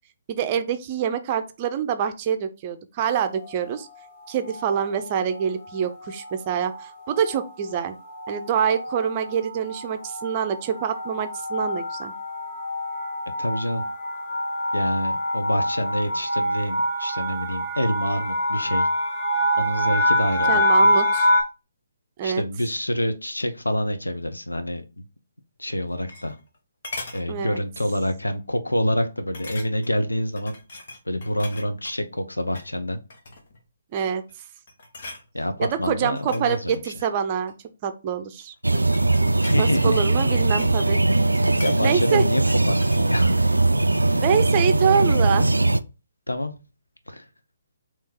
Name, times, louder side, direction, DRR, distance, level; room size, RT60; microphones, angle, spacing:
voice 1, 0.3-3.9 4.3-7.9 8.3-12.1 20.5-21.3 22.2-22.4 27.3-27.6 33.9-34.2 35.6-37.5 37.8-38.5 39.6-41.0 41.8-42.2 44.2-45.5, right 8 dB, 30° right, 9 dB, 0.5 m, -25 dB
sound 1, 3.3-3.8 4.5-4.9 5.2-5.4 5.6-21.4, equal, 10° left, 1.8 m, -26 dB
voice 2, 13.4-13.8 14.7-18.9 19.6-20.9 22.2-25.0 25.6-26.4 27.1-30.6 31.1-33.0 35.3-36.8 39.4-40.0 41.6-43.4 44.1-44.2 46.3-46.5 47.1-47.2, equal, 85° left, 8 dB, 0.7 m, -27 dB
sound 2, 25.7-26.6 26.8-27.3 27.8-28.0 28.3-28.4 29.3-30.0 30.4-32.0 32.4-32.7 33.1-33.6 34.1-34.4 34.7-35.3 36.0-37.6 38.4-40.8 41.1-43.1 43.4-43.5, left 2 dB, 55° left, 1.0 m, -40 dB
sound 3, 38.6-45.8, right 2 dB, 85° right, 0.3 m, -20 dB
3.6 x 3.0 x 4.3 m, 0.30 s
figure-of-eight pair, 140°, 0 cm